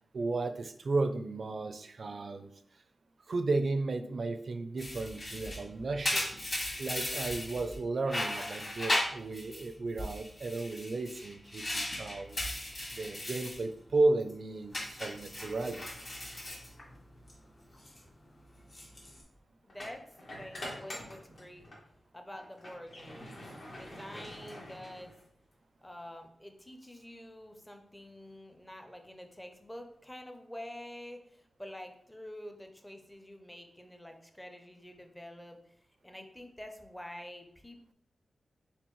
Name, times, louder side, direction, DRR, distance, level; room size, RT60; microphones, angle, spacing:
voice 1, 0.1-2.5 3.3-6.3 6.8-12.6 12.9-15.9, right 3 dB, 55° right, 9 dB, 0.4 m, -33 dB
sound 1, 4.8-7.8 8.1-9.7 10.0-13.6 14.0-14.3 14.7-17.3 17.6-18.0 18.6-19.2, left 1 dB, 40° left, 1.9 m, -37 dB
sound 2, 17.6-17.8 19.7-21.9 22.3-25.5, left 1 dB, 65° left, 1.5 m, -46 dB
voice 2, 19.6-21.7 22.1-23.4 23.7-25.1 25.8-35.6 36.0-37.9, left 1 dB, 10° left, 5 dB, 0.6 m, -47 dB
4.3 x 3.9 x 3.1 m, 0.66 s
wide cardioid pair, 105°, 0 cm